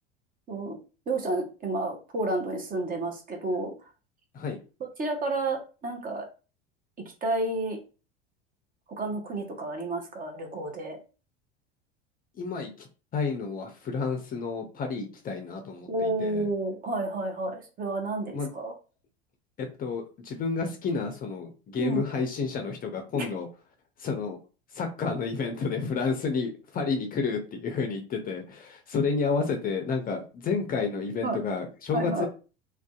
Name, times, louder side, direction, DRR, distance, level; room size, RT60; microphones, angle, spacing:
voice 1, 1.1-3.7 4.8-6.3 7.2-7.8 9.0-11.0 15.9-18.7 21.8-22.0 23.1-23.3 31.2-31.4 31.9-32.3, right 2 dB, 30° right, 3 dB, 0.7 m, -30 dB
voice 2, 12.4-12.9 13.1-16.5 18.3-18.5 19.6-23.5 24.0-24.4 24.7-32.3, left 4 dB, 30° left, 4 dB, 0.5 m, -30 dB
2.4 x 2.3 x 2.3 m, 0.34 s
hypercardioid pair, 85°, 31 cm